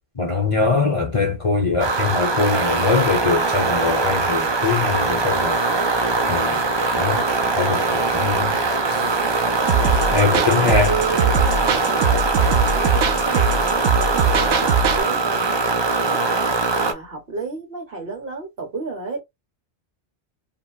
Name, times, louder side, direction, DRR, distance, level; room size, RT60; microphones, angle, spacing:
voice 1, 0.2-5.6 6.3-6.6 7.0-7.2 7.5-8.5 8.9-9.1 10.1-11.0, left 4 dB, 35° left, 0.7 m, -22 dB
sound 1, 1.8-16.9, right 3 dB, 40° right, 0.4 m, -21 dB
voice 2, 8.2-8.5 10.4-16.2 16.7-19.2, right 4 dB, 55° right, 1.5 m, -32 dB
sound 2, 9.7-15.0, right 5 dB, 85° right, 0.9 m, -21 dB
2.9 x 2.8 x 2.3 m
omnidirectional pair, 1.1 m